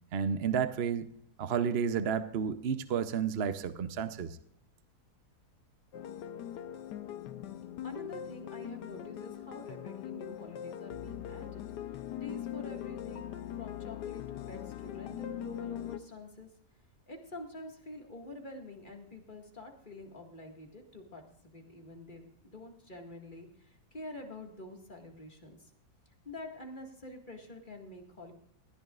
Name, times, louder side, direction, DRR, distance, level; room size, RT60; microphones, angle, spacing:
voice 1, 0.1-1.1 1.4-4.4, right 7 dB, 50° right, 11 dB, 0.8 m, -31 dB
sound 1, 5.9-16.0, left 11 dB, 90° left, 1.4 m, -41 dB
voice 2, 7.8-11.6 12.0-16.5 17.1-25.7 26.3-28.3, left 1 dB, 30° left, 2 dB, 2.0 m, -47 dB
19.5 x 14.5 x 2.4 m, 0.70 s
omnidirectional pair, 1.7 m